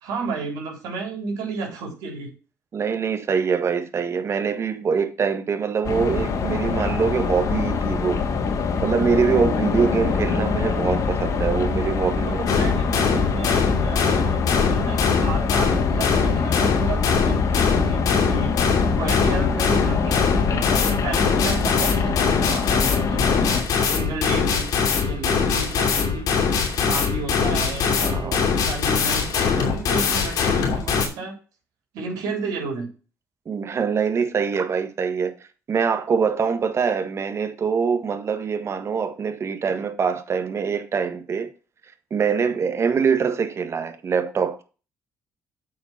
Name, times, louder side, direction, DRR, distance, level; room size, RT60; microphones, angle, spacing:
voice 1, 0.0-2.3 12.2-20.7 21.0-23.5 23.9-26.6 26.9-31.4 31.9-32.9, right 4 dB, 90° right, 3.5 m, -32 dB
voice 2, 2.7-8.2 8.8-12.5 28.0-28.4 33.4-35.3 35.7-41.5 42.1-44.6, right 6 dB, 45° right, 1.5 m, -24 dB
sound 1, 5.8-23.6, left 5 dB, 60° left, 1.9 m, -24 dB
sound 2, 12.5-31.1, left 5 dB, 75° left, 2.7 m, -22 dB
8.0 x 5.2 x 5.8 m
supercardioid pair, 75°, 6 cm